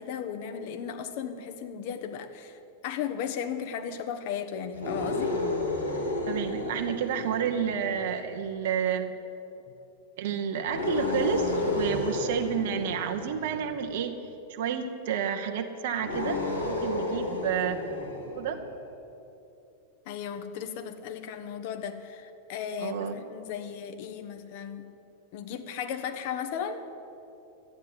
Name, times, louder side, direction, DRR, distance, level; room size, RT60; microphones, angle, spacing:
voice 1, 0.0-2.6 2.8-5.4 20.1-24.8 25.3-26.9, left 8 dB, 50° left, 8 dB, 1.1 m, -35 dB
sound 1, 4.7-8.3 10.6-13.8 16.0-18.7, left 2 dB, 80° left, 2.3 m, -31 dB
voice 2, 6.3-9.1 10.2-14.2 14.5-17.8 18.3-18.6 22.8-23.1, right 8 dB, 55° right, 5 dB, 0.9 m, -30 dB
12.5 x 9.6 x 9.7 m, 2.8 s
figure-of-eight pair, 90°, 0 cm